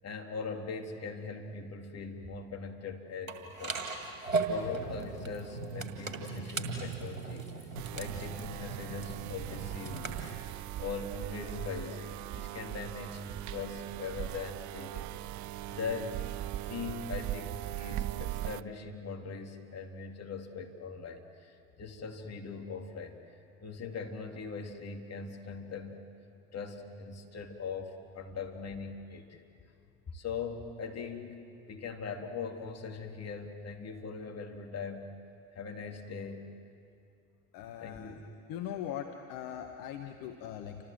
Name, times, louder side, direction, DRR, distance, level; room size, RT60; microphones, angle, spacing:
voice 1, 0.0-3.8 4.3-7.5 7.9-10.2 10.8-15.1 15.7-16.2 16.6-23.2 23.6-26.0 26.5-29.4 30.1-35.1 35.5-36.5 37.8-38.2, left 5 dB, 40° left, 2 dB, 3.4 m, -41 dB
sound 1, 3.3-10.3, right 3 dB, 90° right, 2.1 m, -37 dB
sound 2, 7.8-18.6, right 14 dB, 50° right, 0.7 m, -39 dB
voice 2, 37.5-38.2 38.5-40.8, left 10 dB, 60° left, 5 dB, 1.6 m, -40 dB
29.5 x 26.0 x 7.7 m, 2.4 s
figure-of-eight pair, 55°, 39 cm